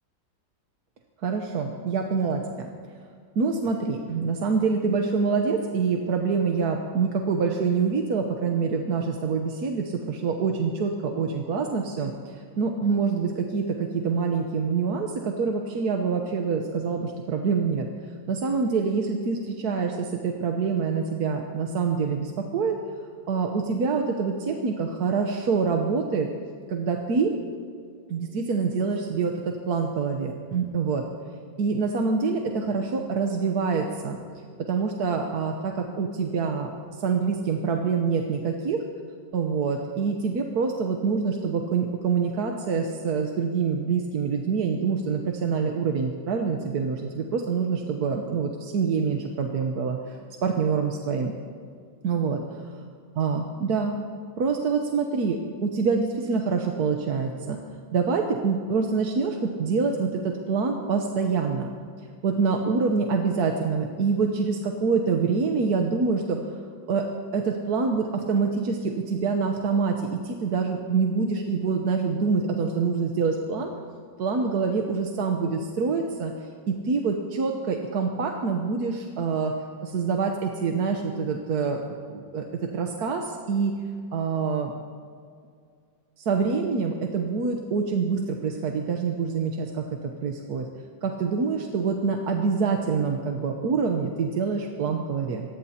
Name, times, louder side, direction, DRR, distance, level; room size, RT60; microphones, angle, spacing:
voice 1, 1.2-2.7 3.4-17.8 18.3-22.8 23.3-26.3 26.7-27.3 28.1-31.0 31.6-34.2 34.7-36.7 37.0-38.8 39.3-51.3 52.0-52.4 53.2-54.0 54.4-57.6 57.9-61.7 62.2-66.4 66.9-67.0 67.3-73.7 74.2-76.3 76.7-79.5 79.8-81.8 82.1-82.4 82.7-83.7 84.1-84.7 86.2-89.8 90.2-90.6 91.0-95.4, right 5 dB, 60° right, 2 dB, 1.4 m, -26 dB
25.5 x 19.5 x 2.9 m, 2.2 s
omnidirectional pair, 2.0 m